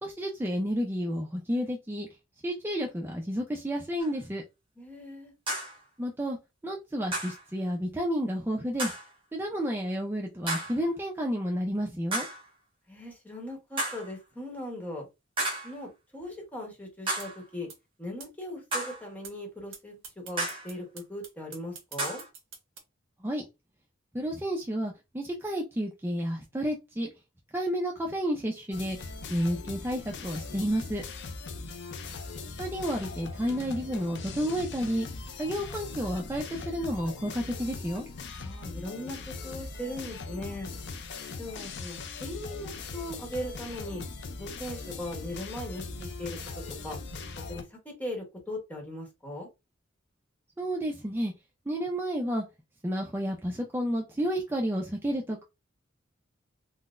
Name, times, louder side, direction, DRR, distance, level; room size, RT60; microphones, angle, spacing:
voice 1, 0.0-2.1 2.4-4.4 6.0-6.4 6.6-8.9 9.3-12.3 23.2-23.4 24.1-27.1 27.5-31.0 32.6-35.1 35.4-38.0 50.6-51.3 51.7-52.4 52.8-55.4, equal, 10° right, 0.4 m, -31 dB
sound 1, 4.0-4.1 5.5-5.8 7.1-7.4 8.8-9.1 10.5-10.8 12.1-12.5 13.8-14.1 15.4-15.8 17.1-17.4 18.7-19.1 20.4-20.7 22.0-22.3, right 1 dB, 25° right, 1.2 m, -32 dB
voice 2, 4.8-5.3 12.9-15.1 15.6-17.7 18.0-22.2 31.5-31.7 38.4-40.7 41.4-44.0 44.4-46.4 46.8-47.0 47.5-49.5, left 1 dB, 10° left, 1.1 m, -39 dB
sound 2, 17.2-17.3 17.7-17.8 18.2-18.3 18.7-18.8 19.2-19.3 19.7-19.8 20.0-22.8, right 6 dB, 75° right, 1.0 m, -44 dB
sound 3, 28.7-47.6, left 4 dB, 60° left, 0.5 m, -40 dB
3.8 x 2.1 x 2.4 m
head